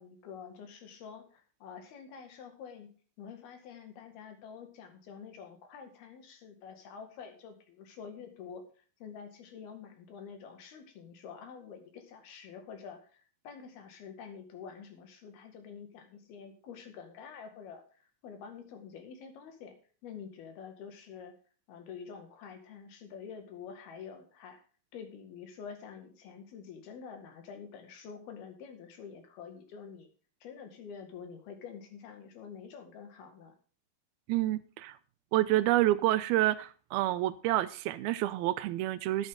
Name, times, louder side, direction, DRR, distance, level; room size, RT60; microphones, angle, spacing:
voice 1, 0.0-2.9 3.2-8.6 9.0-19.8 20.0-21.3 21.7-24.6 24.9-30.1 30.4-33.5, left 6 dB, 80° left, 4.0 m, -47 dB
voice 2, 34.3-35.0 35.3-39.3, right 15 dB, 85° right, 2.6 m, -28 dB
12.5 x 11.0 x 3.8 m
omnidirectional pair, 4.3 m